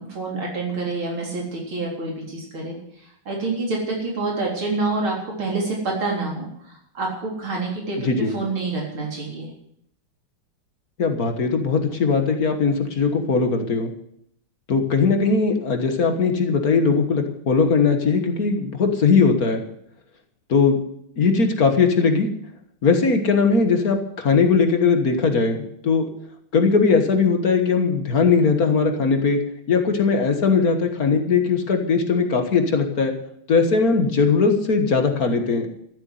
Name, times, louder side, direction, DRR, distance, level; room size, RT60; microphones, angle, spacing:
voice 1, 0.0-9.5, right 3 dB, 90° right, -2 dB, 4.6 m, -27 dB
voice 2, 8.0-8.4 11.0-13.9 14.7-19.6 20.5-20.8 21.2-22.3 22.8-26.1 26.5-29.4 29.7-33.1 33.5-35.7, left 4 dB, 50° left, 5 dB, 1.8 m, -19 dB
13.5 x 8.1 x 9.3 m, 0.72 s
omnidirectional pair, 2.2 m